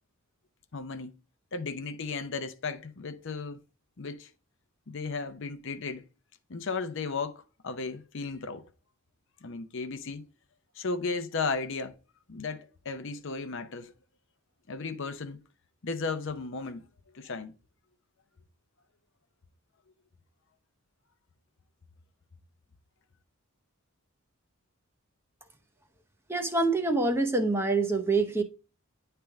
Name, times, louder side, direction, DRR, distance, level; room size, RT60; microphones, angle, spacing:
voice 1, 0.7-1.1 1.5-3.6 4.0-4.3 4.9-6.1 6.5-8.6 9.4-10.3 10.8-11.9 12.3-13.9 14.7-15.4 15.8-16.8 17.1-17.5, left 4 dB, 55° left, 0.7 m, -35 dB
voice 2, 26.3-28.4, right 3 dB, 10° right, 0.8 m, -26 dB
10.0 x 3.4 x 3.4 m
head